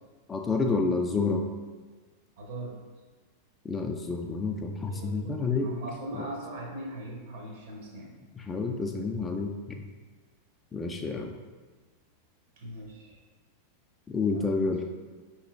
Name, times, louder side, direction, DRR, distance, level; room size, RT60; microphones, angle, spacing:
voice 1, 0.3-1.5 3.7-5.7 8.5-9.8 10.7-11.3 14.1-14.8, left 4 dB, 15° left, 3 dB, 0.3 m, -29 dB
voice 2, 2.4-2.8 4.9-8.1 12.6-13.2 14.3-14.7, right 1 dB, 55° right, -1 dB, 0.9 m, -40 dB
5.4 x 3.0 x 2.4 m, 1.4 s
figure-of-eight pair, 90°, 0 cm